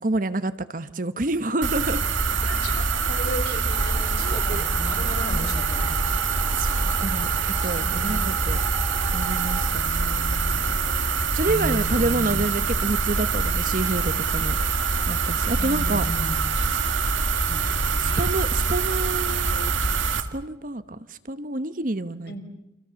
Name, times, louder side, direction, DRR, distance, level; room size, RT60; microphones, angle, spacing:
voice 1, 0.0-2.0 4.2-4.6 6.5-8.6 9.1-10.8 11.3-14.6 15.1-16.0 17.6-19.7 20.2-20.8 21.1-22.4, right 2 dB, 45° right, 12 dB, 1.0 m, -28 dB
sound 1, 1.6-20.2, right 4 dB, 85° right, 2.1 m, -24 dB
voice 2, 2.0-6.0 7.6-8.3 11.4-12.6 15.6-16.6 17.5-18.3 22.3-22.4, left 1 dB, 55° left, 5 dB, 4.6 m, -35 dB
sound 2, 3.7-9.7, right 2 dB, 20° right, 2.4 m, -39 dB
29.5 x 27.0 x 7.0 m, 0.92 s
head